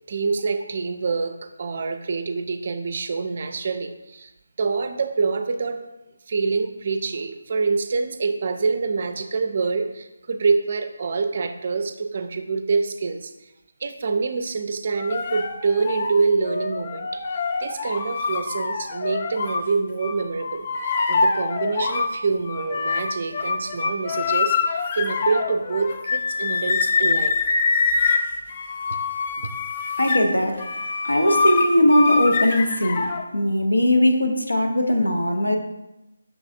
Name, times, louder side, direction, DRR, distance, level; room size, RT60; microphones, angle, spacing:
voice 1, 0.1-4.3 4.6-5.8 6.3-13.5 13.8-17.2 17.6-20.7 21.1-27.4 29.4-29.5, right 4 dB, 45° right, 7 dB, 0.4 m, -26 dB
sound 1, 15.0-19.7 20.0-22.1 22.5-33.3, left 4 dB, 35° left, 0.3 m, -25 dB
voice 2, 30.0-30.7 31.0-33.1 33.3-35.6, left 1 dB, 90° left, 4 dB, 0.7 m, -19 dB
5.9 x 3.2 x 2.6 m, 0.96 s
figure-of-eight pair, 155°, 0 cm